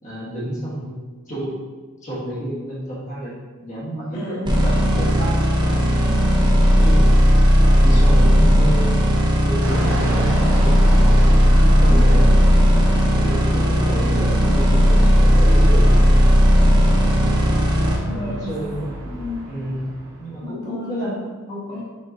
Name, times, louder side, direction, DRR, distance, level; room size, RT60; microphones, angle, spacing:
voice 1, 0.0-1.6 2.0-3.3 3.6-5.9 6.7-7.2 7.8-9.1 9.4-10.9 11.4-12.5 13.2-16.0 18.1-19.1 19.4-19.9 20.2-21.8, right 1 dB, 35° left, -7 dB, 1.3 m, -30 dB
voice 2, 4.1-4.6 6.0-6.4 11.5-12.4 18.1-18.5 19.0-19.6 20.4-21.1 21.7-21.8, left 1 dB, 85° left, -6 dB, 1.0 m, -32 dB
sound 1, 4.5-18.0, equal, 20° right, 0.6 m, -15 dB
Fixed-wing aircraft airplane, 9.6-20.5, right 1 dB, 65° right, 0.8 m, -32 dB
5.2 x 3.6 x 2.7 m, 1.3 s
head